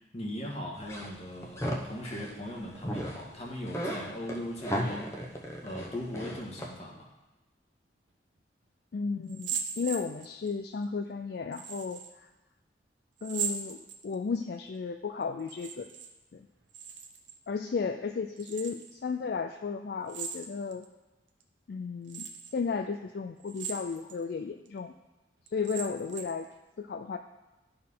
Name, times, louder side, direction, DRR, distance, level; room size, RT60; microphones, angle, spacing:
voice 1, 0.1-7.1, left 1 dB, 35° left, -2 dB, 1.7 m, -39 dB
sound 1, 0.8-2.4 2.8-3.2 3.5-6.7, equal, 15° left, 0.9 m, -35 dB
voice 2, 8.9-12.0 13.2-15.9 16.3-16.5 17.5-20.8 21.7-22.3 22.5-24.9 25.5-26.5 26.8-27.2, left 5 dB, 60° left, 6 dB, 0.4 m, -34 dB
sound 2, 9.3-10.5 11.5-12.1 13.2-14.4 15.4-16.1 16.4-17.4 18.4-18.9 20.1-20.8 21.4-21.5 22.1-22.5 23.4-24.2 24.7-24.8 25.5-26.4, right 7 dB, 90° right, 0.8 m, -38 dB
11.5 x 4.4 x 5.5 m, 1.1 s
head